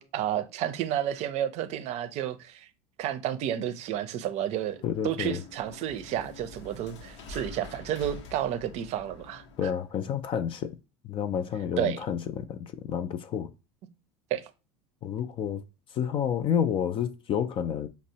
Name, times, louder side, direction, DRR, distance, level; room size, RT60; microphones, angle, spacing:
voice 1, 0.0-2.7 3.0-4.8 5.0-9.4 11.8-12.0 14.3-14.4, right 11 dB, 50° right, 0.5 m, -31 dB
sound 1, 4.4-9.9, left 3 dB, 85° left, 0.7 m, -47 dB
voice 2, 4.8-5.4 9.6-10.8 11.0-13.5 15.0-15.6 15.9-17.9, left 8 dB, 40° left, 0.4 m, -30 dB
5.1 x 2.0 x 2.7 m
supercardioid pair, 100°, 14 cm